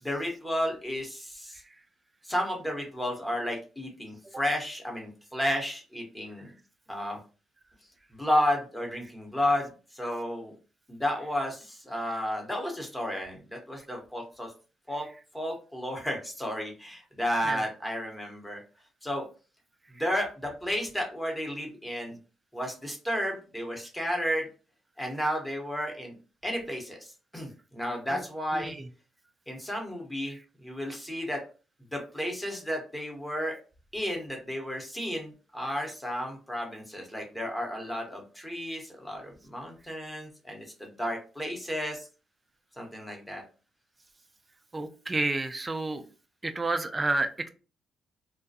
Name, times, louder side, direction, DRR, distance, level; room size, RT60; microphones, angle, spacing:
voice 1, 0.0-1.6 2.2-6.5 6.9-7.2 8.1-10.5 10.9-14.5 14.9-15.1 15.3-18.6 19.0-19.2 19.9-22.2 22.5-24.5 25.0-26.1 26.4-28.7 29.5-31.4 31.9-33.6 33.9-42.1 42.8-43.4, equal, 10° left, 1 dB, 0.9 m, -32 dB
voice 2, 44.7-46.0 46.4-47.5, right 2 dB, 20° right, 8 dB, 0.3 m, -30 dB
2.4 x 2.2 x 2.6 m, 0.35 s
cardioid pair, 90°, 0 cm